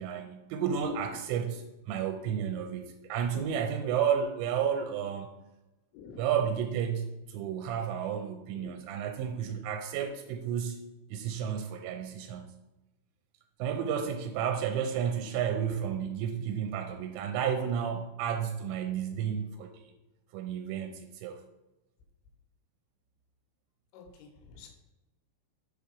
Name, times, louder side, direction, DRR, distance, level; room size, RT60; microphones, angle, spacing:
voice 1, 0.0-5.3 6.2-10.8 11.1-12.5 13.6-19.9 20.3-21.4, right 8 dB, 85° right, 5 dB, 3.1 m, -32 dB
voice 2, 5.9-6.3 8.5-8.7 23.9-24.7, left 5 dB, 85° left, 3 dB, 3.5 m, -48 dB
7.3 x 4.7 x 5.3 m, 0.98 s
omnidirectional pair, 5.6 m